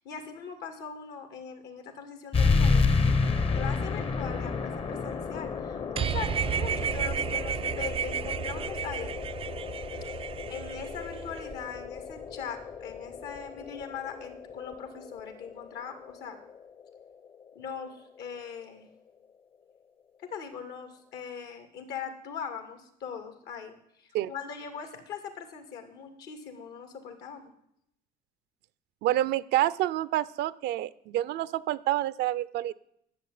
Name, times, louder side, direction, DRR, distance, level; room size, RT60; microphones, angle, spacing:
voice 1, 0.0-3.1 3.5-9.2 10.5-16.4 17.5-18.9 20.2-27.5, left 6 dB, 75° left, 7 dB, 2.5 m, -41 dB
sound 1, 2.3-17.4, left 4 dB, 35° left, 0.9 m, -31 dB
sound 2, 6.0-11.6, right 8 dB, 35° right, 0.4 m, -32 dB
voice 2, 29.0-32.7, right 14 dB, 80° right, 18 dB, 0.6 m, -28 dB
11.0 x 7.3 x 9.3 m, 0.75 s
cardioid pair, 110°, 17 cm